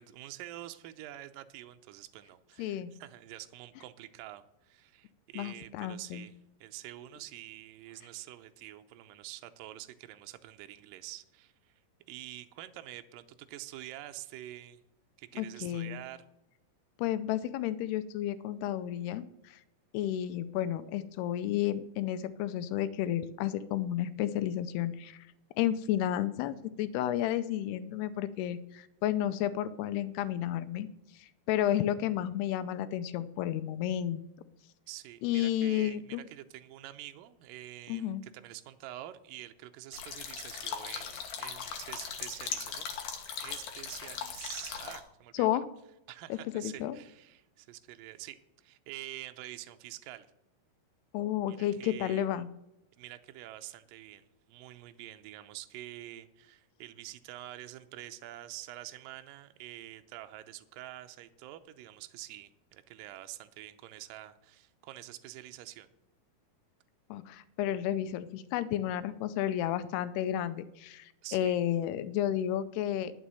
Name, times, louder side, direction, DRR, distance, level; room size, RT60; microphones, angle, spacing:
voice 1, 0.0-11.8 12.1-14.8 15.2-16.3 34.9-42.9 43.4-45.5 46.1-50.3 51.5-52.3 53.0-65.9 71.2-71.6, right 14 dB, 80° right, 8 dB, 2.0 m, -47 dB
voice 2, 2.6-2.9 5.4-6.3 15.4-16.0 17.0-19.6 19.9-25.3 25.6-30.9 31.2-34.2 35.2-36.2 37.9-38.2 45.3-45.7 46.3-47.0 51.1-52.5 67.1-73.1, left 11 dB, 80° left, 13 dB, 2.6 m, -32 dB
sound 1, 39.9-45.0, left 7 dB, 60° left, 2.4 m, -39 dB
11.5 x 6.4 x 7.6 m, 0.86 s
omnidirectional pair, 4.8 m